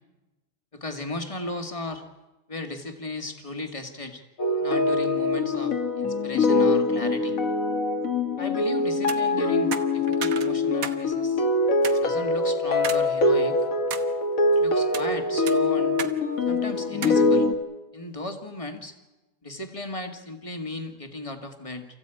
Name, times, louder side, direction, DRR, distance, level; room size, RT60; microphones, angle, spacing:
voice 1, 0.7-2.1 2.5-4.2 4.6-7.4 8.4-11.4 12.0-13.6 14.6-16.0 16.4-17.5 17.9-19.0 19.4-21.9, left 2 dB, 15° left, 5 dB, 1.8 m, -36 dB
sound 1, 4.4-17.5, left 2 dB, 45° left, 1.8 m, -23 dB
sound 2, 8.9-9.2 9.7-11.0 11.3-11.4 11.8-12.0 12.8-13.0 13.5-14.1 14.7-15.1 15.5-16.2 16.4-16.5 17.0-17.2, right 7 dB, 50° right, 1.2 m, -34 dB
28.0 x 15.0 x 9.1 m, 1.1 s
omnidirectional pair, 2.3 m